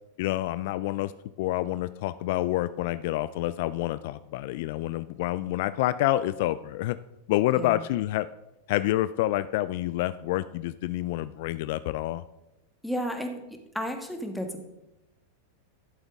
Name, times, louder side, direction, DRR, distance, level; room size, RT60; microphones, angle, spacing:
voice 1, 0.2-1.1 1.4-7.0 7.3-8.3 8.7-12.2, left 15 dB, 60° left, 15 dB, 0.3 m, -28 dB
voice 2, 12.8-13.4 13.7-14.7, equal, 5° left, 4 dB, 1.5 m, -32 dB
11.5 x 7.2 x 3.6 m, 0.93 s
hypercardioid pair, 105°, 0 cm